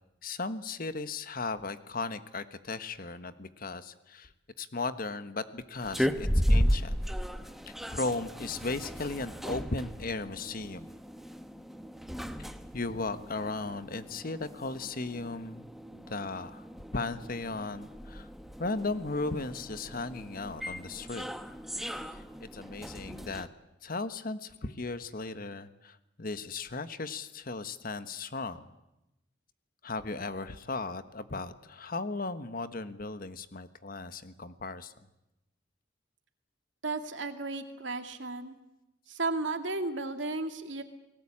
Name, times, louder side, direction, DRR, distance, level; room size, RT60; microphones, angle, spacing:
voice 1, 0.2-4.3 4.6-7.0 7.7-10.9 12.4-16.7 16.9-18.3 18.6-21.3 22.1-23.5 23.8-28.6 29.8-34.9, left 3 dB, 50° left, 11 dB, 1.3 m, -36 dB
sound 1, 5.8-23.5, equal, ahead, 1.1 m, -35 dB
voice 2, 36.8-38.6 39.1-40.8, right 3 dB, 75° right, 7 dB, 2.3 m, -34 dB
29.5 x 19.0 x 8.7 m, 0.93 s
head